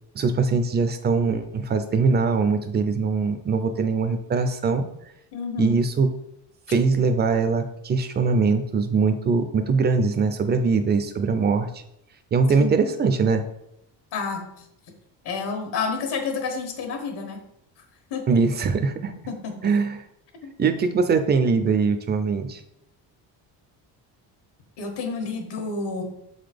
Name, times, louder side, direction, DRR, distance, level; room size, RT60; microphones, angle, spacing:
voice 1, 0.2-4.9 5.6-6.1 6.7-11.8 12.3-13.4 18.3-19.1 19.6-20.0 20.6-22.6, right 4 dB, 25° right, 9 dB, 0.4 m, -22 dB
voice 2, 5.3-5.8 12.5-12.7 14.1-14.6 15.2-17.4 18.1-18.4 19.3-19.7 20.4-20.5 24.8-26.0, left 4 dB, 65° left, 4 dB, 1.5 m, -30 dB
6.8 x 4.0 x 5.1 m, 0.81 s
cardioid pair, 175°, 42 cm